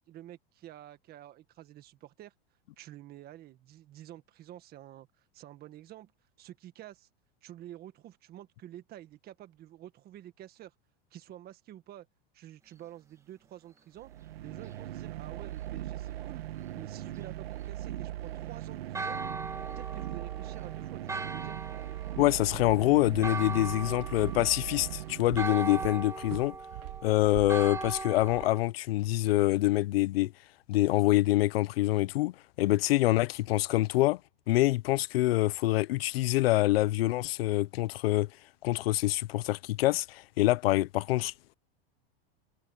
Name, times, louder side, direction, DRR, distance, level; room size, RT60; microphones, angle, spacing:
voice 1, 0.1-2.3 2.8-5.1 5.3-6.1 6.4-7.1 7.4-10.7 11.1-12.1 12.3-14.1 14.4-16.4 16.8-19.2 19.8-21.6, right 13 dB, 30° right, 1.7 m, -49 dB
sound 1, 14.0-25.8, right 13 dB, 90° right, 1.8 m, -39 dB
Church bell, 18.9-28.6, right 3 dB, 10° right, 1.7 m, -39 dB
voice 2, 22.2-26.6 27.0-30.3 30.7-34.2 34.5-38.3 38.6-41.5, left 17 dB, 80° left, 0.9 m, -26 dB
Walk footsteps, 22.4-28.5, right 23 dB, 50° right, 0.8 m, -45 dB
supercardioid pair, 145°, 29 cm